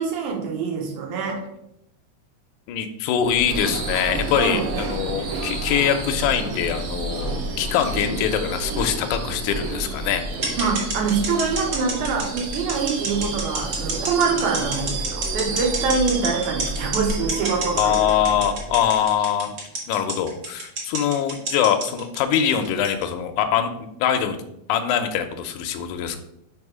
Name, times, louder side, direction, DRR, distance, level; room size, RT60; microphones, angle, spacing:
voice 1, 0.0-1.4 4.3-4.7 10.6-18.1, right 5 dB, 85° right, 0 dB, 2.6 m, -24 dB
voice 2, 2.7-10.2 17.8-19.6 19.9-23.7 24.0-24.4 24.7-26.2, left 9 dB, 85° left, 6 dB, 2.0 m, -23 dB
Subway metro underground / Screech, 3.2-19.1, right 2 dB, 65° right, 1.3 m, -30 dB
sound 1, 10.4-23.0, right 3 dB, 50° right, 2.3 m, -28 dB
5.5 x 5.0 x 4.8 m, 0.80 s
omnidirectional pair, 3.5 m